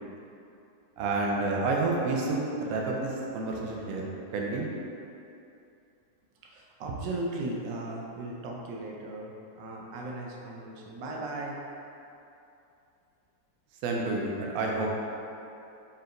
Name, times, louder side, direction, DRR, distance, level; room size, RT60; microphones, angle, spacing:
voice 1, 1.0-4.0 4.3-4.7 13.8-14.9, right 3 dB, 70° right, -1 dB, 0.9 m, -29 dB
voice 2, 6.4-11.6, right 2 dB, 85° right, -1 dB, 1.3 m, -37 dB
4.3 x 3.9 x 2.5 m, 2.7 s
omnidirectional pair, 1.9 m